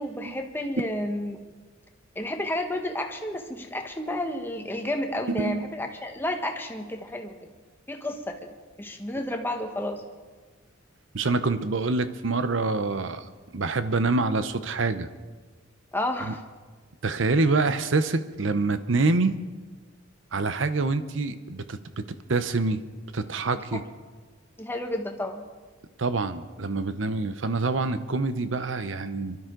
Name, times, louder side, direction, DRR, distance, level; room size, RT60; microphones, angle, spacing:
voice 1, 0.0-1.4 2.1-7.4 7.9-8.5 8.8-10.0 15.9-16.4 23.5-23.8 24.6-25.4, left 1 dB, 10° left, 4 dB, 1.2 m, -31 dB
voice 2, 5.3-5.6 11.1-13.3 13.5-15.1 16.3-16.4 17.0-19.4 20.3-22.0 22.3-22.8 23.1-23.8 26.0-29.4, right 3 dB, 65° right, 11 dB, 0.8 m, -26 dB
24.5 x 12.5 x 3.8 m, 1.4 s
head